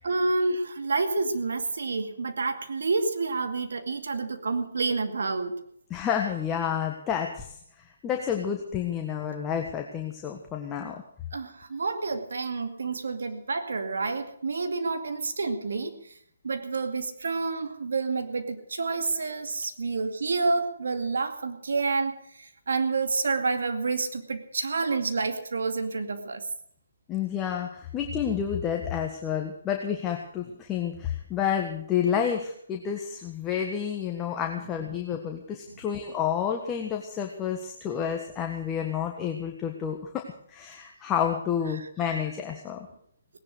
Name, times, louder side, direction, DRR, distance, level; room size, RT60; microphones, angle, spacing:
voice 1, 0.0-5.5 11.3-16.0 16.4-26.4 41.7-41.9, right 3 dB, 75° right, 7 dB, 2.4 m, -29 dB
voice 2, 5.9-7.6 8.0-11.0 27.1-42.9, left 8 dB, 15° left, 2 dB, 1.6 m, -30 dB
18.5 x 10.5 x 6.6 m, 0.64 s
hypercardioid pair, 150°, 0 cm